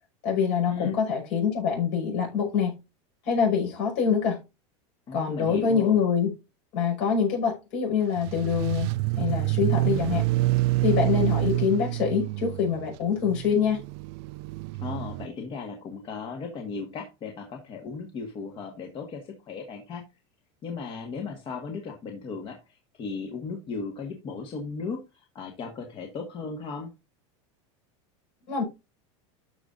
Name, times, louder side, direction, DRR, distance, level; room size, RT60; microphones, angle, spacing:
voice 1, 0.2-2.8 3.2-4.4 5.1-6.3 6.7-8.9 9.2-10.2 10.8-13.8 28.5-28.6, left 6 dB, 65° left, 5.6 m, -25 dB
voice 2, 5.1-6.0 14.8-20.0 20.6-26.9, left 4 dB, 35° left, 1.5 m, -36 dB
sound 1, 8.2-15.3, right 18 dB, 60° right, 0.4 m, -27 dB
13.0 x 5.1 x 2.6 m
supercardioid pair, 135°, 15 cm